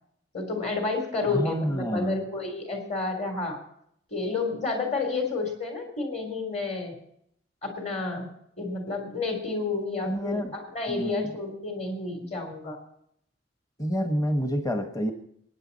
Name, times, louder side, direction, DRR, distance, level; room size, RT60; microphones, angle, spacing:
voice 1, 0.3-3.6 4.1-7.0 7.6-8.3 8.6-12.8, left 3 dB, 40° left, 4 dB, 3.6 m, -30 dB
voice 2, 1.3-2.2 10.0-10.5 10.9-11.3 13.8-15.1, equal, 20° left, 6 dB, 1.3 m, -28 dB
23.0 x 10.0 x 4.2 m, 0.71 s
head